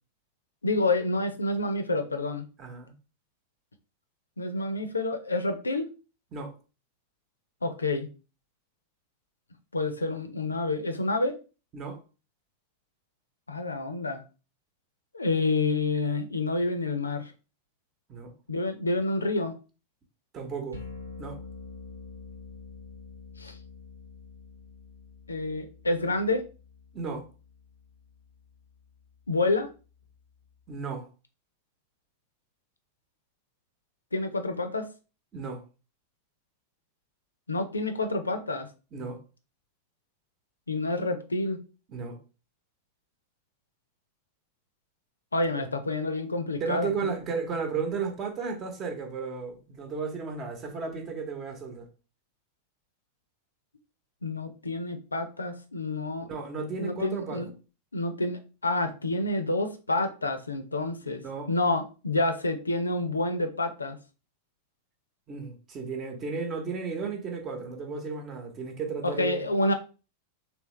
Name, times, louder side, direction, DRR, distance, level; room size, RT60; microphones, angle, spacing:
voice 1, 0.6-2.5 4.4-5.9 7.6-8.1 9.7-11.4 13.5-14.2 15.1-17.3 18.5-19.5 23.4-23.6 25.3-26.5 29.3-29.7 34.1-34.9 37.5-38.7 40.7-41.6 45.3-47.2 54.2-56.3 56.8-57.5 57.9-61.2 61.5-64.0 69.0-69.7, left 2 dB, 80° left, 0.5 m, -28 dB
voice 2, 2.6-2.9 6.3-6.5 11.7-12.0 18.1-18.3 20.3-20.8 21.2-21.4 26.9-27.2 30.7-31.1 35.3-35.6 38.9-39.2 41.9-42.2 45.5-45.6 46.6-51.9 56.3-57.5 61.2-61.5 65.3-69.4, right 5 dB, 30° right, 0.9 m, -34 dB
sound 1, 20.7-30.8, left 4 dB, 85° right, 0.9 m, -47 dB
3.4 x 3.1 x 3.1 m
figure-of-eight pair, 90°, 0 cm